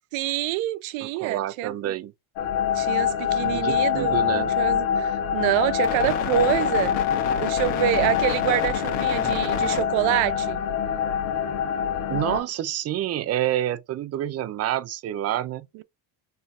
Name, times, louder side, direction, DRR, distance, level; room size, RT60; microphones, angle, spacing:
voice 1, 0.1-1.9 2.7-6.9 7.4-10.6 15.7-15.8, right 13 dB, 75° right, 0.7 m, -26 dB
voice 2, 1.2-2.1 3.4-4.5 12.1-15.7, right 12 dB, 35° right, 0.4 m, -28 dB
sound 1, 2.4-12.4, left 8 dB, 85° left, 1.3 m, -24 dB
5.6 x 3.2 x 2.4 m
cardioid pair, 130°, 47 cm